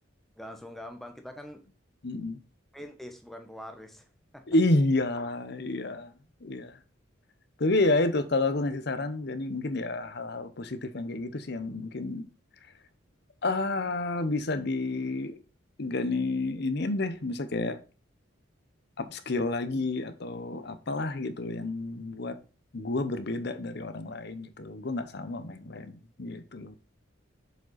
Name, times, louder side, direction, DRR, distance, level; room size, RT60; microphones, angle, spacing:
voice 1, 0.4-1.6 2.7-4.1 4.3-4.5, left 1 dB, ahead, 1.0 m, -43 dB
voice 2, 2.0-2.4 4.5-6.1 6.4-6.7 7.6-12.3 13.4-15.4 15.8-17.8 19.0-22.4 22.7-26.8, left 2 dB, 55° left, 0.8 m, -30 dB
6.7 x 5.0 x 4.0 m
head